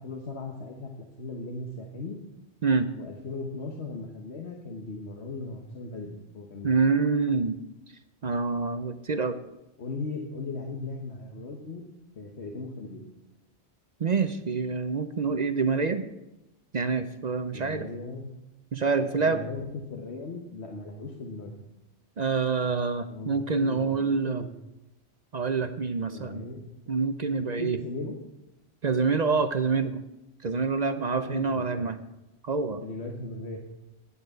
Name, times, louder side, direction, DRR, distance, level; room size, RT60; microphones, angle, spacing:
voice 1, 0.0-2.2 2.9-6.7 9.8-11.8 12.1-13.1 17.5-18.3 19.0-21.5 23.1-24.5 26.1-26.7 27.0-27.1 27.4-28.2 31.2-31.9 32.8-33.6, left 3 dB, 75° left, 2 dB, 1.5 m, -38 dB
voice 2, 6.6-7.6 8.2-9.4 14.0-16.0 16.7-17.9 18.7-19.4 22.2-24.4 25.3-26.4 26.9-27.8 28.8-30.0 30.4-32.0 32.4-32.8, right 4 dB, 45° right, 10 dB, 0.7 m, -26 dB
9.7 x 8.4 x 8.0 m, 0.94 s
omnidirectional pair, 1.1 m